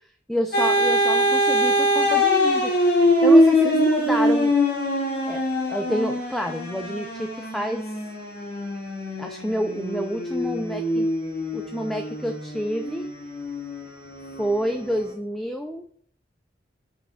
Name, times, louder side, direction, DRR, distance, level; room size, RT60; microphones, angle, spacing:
voice 1, 0.3-4.6 5.3-7.8 9.2-11.1 11.5-13.1 14.4-15.8, equal, ahead, 5 dB, 0.4 m, -28 dB
sound 1, 0.5-15.1, equal, 60° left, 2.2 m, -23 dB
5.5 x 4.8 x 6.2 m, 0.62 s
head